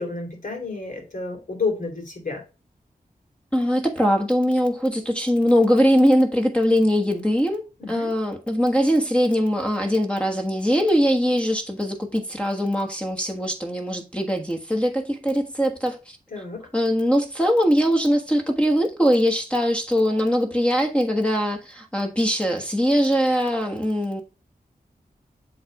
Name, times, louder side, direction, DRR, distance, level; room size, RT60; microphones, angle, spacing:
voice 1, 0.0-2.4 7.8-8.1 16.3-16.7, left 4 dB, 55° left, 2.7 m, -30 dB
voice 2, 3.5-16.2 16.7-24.2, equal, 5° left, 1.4 m, -21 dB
7.8 x 3.4 x 4.9 m
wide cardioid pair, 85°, 16 cm